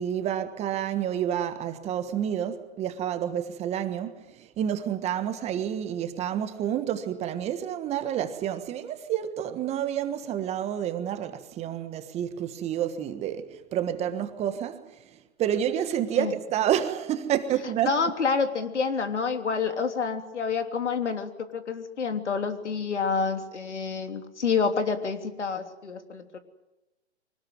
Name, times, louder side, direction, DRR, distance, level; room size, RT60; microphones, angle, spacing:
voice 1, 0.0-14.8 15.4-17.9, right 10 dB, 20° right, 1.4 m, -29 dB
voice 2, 17.8-26.4, left 5 dB, 80° left, 3.3 m, -28 dB
24.5 x 19.0 x 9.4 m
hypercardioid pair, 135°, 35 cm